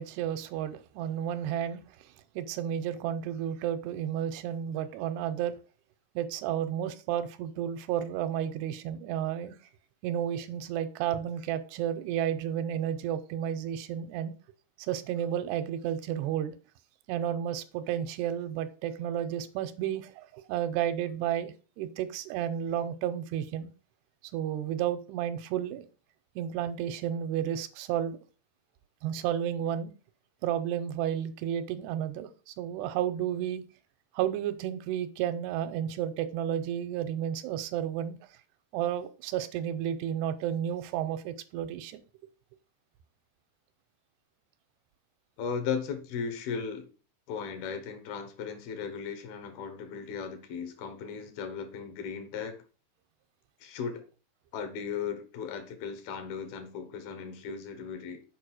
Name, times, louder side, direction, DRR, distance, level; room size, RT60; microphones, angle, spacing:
voice 1, 0.0-5.6 6.2-9.5 10.0-14.3 14.8-16.6 17.1-23.7 24.3-25.9 26.4-28.2 29.0-29.9 30.4-33.6 34.1-38.2 38.7-42.0, right 10 dB, 90° right, 2.8 m, -32 dB
voice 2, 45.4-46.9 47.3-52.6 53.6-54.0 54.5-58.2, left 6 dB, 70° left, 3.0 m, -36 dB
7.4 x 5.0 x 6.3 m
omnidirectional pair, 4.7 m